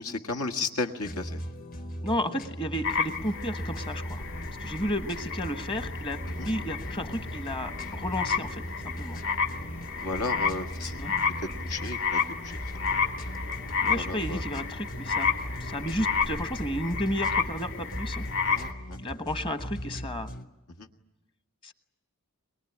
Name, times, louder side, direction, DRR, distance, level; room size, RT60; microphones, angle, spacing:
voice 1, 0.0-1.4 6.3-6.5 10.0-11.0 11.4-13.1 13.8-14.4 18.5-19.0 20.8-20.9, left 3 dB, 80° left, 5 dB, 1.9 m, -34 dB
sound 1, 1.0-20.4, equal, 40° left, 1.5 m, -39 dB
voice 2, 2.0-4.2 4.6-8.6 9.0-9.2 10.9-11.1 13.8-15.3 15.6-18.2 19.0-20.3 21.6-21.7, equal, 20° left, 9 dB, 1.2 m, -32 dB
sound 2, 2.8-18.7, left 5 dB, 60° left, 1.7 m, -31 dB
23.0 x 21.5 x 10.0 m, 0.96 s
head